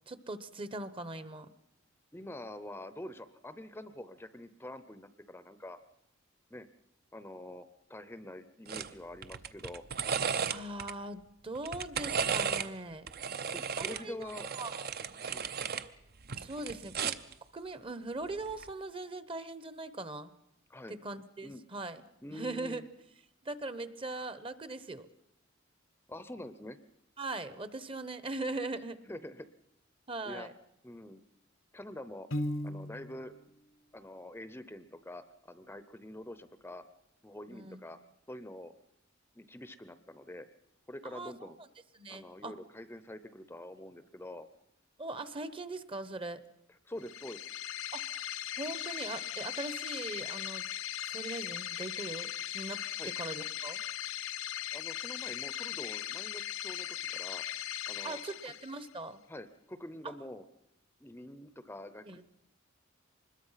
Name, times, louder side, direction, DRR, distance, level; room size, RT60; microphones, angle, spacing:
voice 1, 0.1-1.5 10.5-13.1 13.8-14.9 16.3-17.1 17.5-20.3 20.9-22.0 22.3-22.9 23.4-25.1 27.2-29.0 30.1-30.5 37.5-37.8 41.0-41.5 41.9-42.6 45.0-46.4 47.9-48.0 48.6-50.7 51.1-53.8 58.0-59.2 60.0-60.1 62.1-62.2, right 2 dB, 25° right, 14 dB, 1.0 m, -40 dB
voice 2, 2.1-5.8 6.5-6.7 7.1-9.8 13.5-14.6 15.2-15.5 20.7-21.0 21.4-21.6 22.2-22.9 26.1-26.8 29.1-29.5 30.2-30.5 30.8-31.2 31.7-32.3 32.6-33.3 33.9-36.8 37.2-38.0 38.3-38.7 39.4-40.5 40.9-41.6 42.1-44.5 46.8-47.4 53.0-53.1 54.7-57.4 57.9-58.5 59.3-60.4 61.0-62.2, left 1 dB, 10° left, 12 dB, 0.7 m, -46 dB
sound 1, 8.7-8.9 9.2-10.9 11.6-12.7 13.1-15.9 16.2-17.3 18.5-18.7, right 6 dB, 50° right, 0.8 m, -35 dB
Piano, 32.3-33.3, left 1 dB, 70° left, 1.1 m, -35 dB
sound 2, 47.0-58.9, left 11 dB, 85° left, 0.7 m, -39 dB
25.0 x 21.0 x 5.7 m, 0.80 s
head